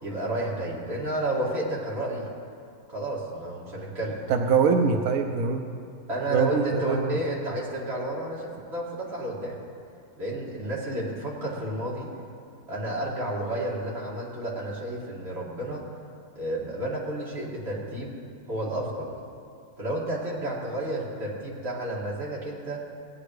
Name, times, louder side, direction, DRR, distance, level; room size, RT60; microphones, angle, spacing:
voice 1, 0.0-2.2 2.9-4.2 6.1-9.6 10.2-12.1 12.7-15.8 16.4-18.1 18.5-19.1 19.8-22.8, right 1 dB, 35° right, -6 dB, 2.5 m, -31 dB
voice 2, 4.3-5.7 6.3-7.2, right 5 dB, 70° right, 4 dB, 0.8 m, -23 dB
17.5 x 9.7 x 3.3 m, 2.4 s
omnidirectional pair, 2.1 m